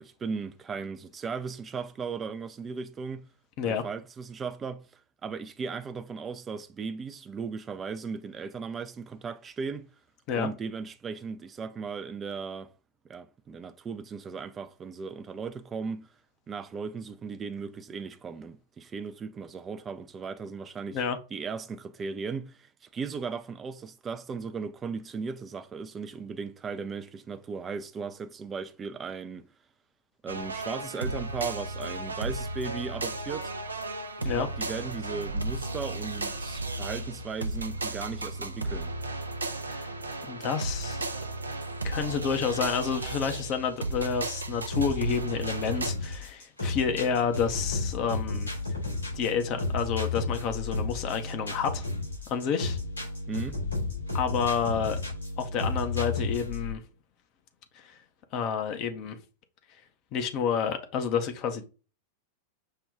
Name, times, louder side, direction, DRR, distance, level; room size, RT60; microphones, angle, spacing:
voice 1, 0.0-3.3 3.6-9.9 10.3-12.7 13.1-16.1 16.5-21.0 21.3-29.5 30.2-33.5 34.2-38.9 53.3-53.6, right 5 dB, 20° right, 0.4 m, -37 dB
sound 1, 30.3-45.9, right 2 dB, 80° right, 0.5 m, -34 dB
voice 2, 40.2-41.0 41.8-48.5 49.1-51.9 52.3-52.8 54.1-55.0 55.4-56.8 57.7-58.0 58.3-59.2 60.1-61.6, left 6 dB, 45° left, 0.7 m, -29 dB
sound 2, 44.7-56.7, left 3 dB, 80° left, 2.6 m, -32 dB
5.4 x 2.2 x 3.6 m
figure-of-eight pair, 90°, 0 cm